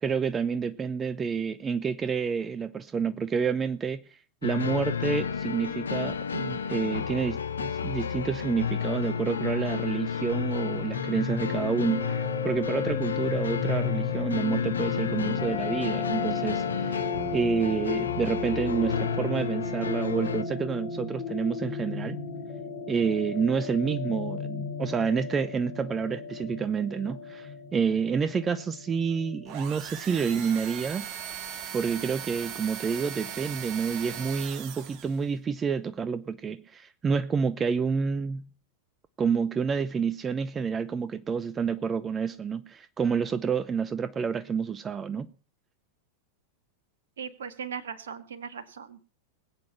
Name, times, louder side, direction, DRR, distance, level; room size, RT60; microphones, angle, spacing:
voice 1, 0.0-22.2 22.9-31.1 31.7-38.5 39.2-45.3, right 6 dB, 20° right, 0.6 m, -29 dB
sound 1, 4.4-20.4, left 7 dB, 70° left, 0.8 m, -31 dB
sound 2, 10.9-30.4, left 5 dB, 40° left, 5.2 m, -35 dB
sound 3, 29.5-35.3, right 9 dB, 40° right, 1.3 m, -39 dB
voice 2, 47.2-49.0, right 7 dB, 65° right, 1.7 m, -38 dB
21.0 x 8.5 x 5.7 m
figure-of-eight pair, 90°, 0 cm